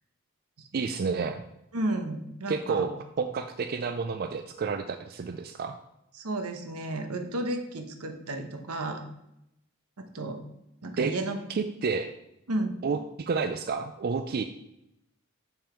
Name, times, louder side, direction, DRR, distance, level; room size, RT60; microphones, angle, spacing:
voice 1, 0.7-1.4 2.5-5.8 11.0-11.1 11.5-12.1 12.8-14.4, right 5 dB, 45° right, 7 dB, 0.4 m, -30 dB
voice 2, 1.7-2.9 6.1-9.0 10.0-10.4 10.8-11.4 12.5-12.8, right 1 dB, 80° right, 6 dB, 1.0 m, -32 dB
6.9 x 5.6 x 4.4 m, 0.83 s
head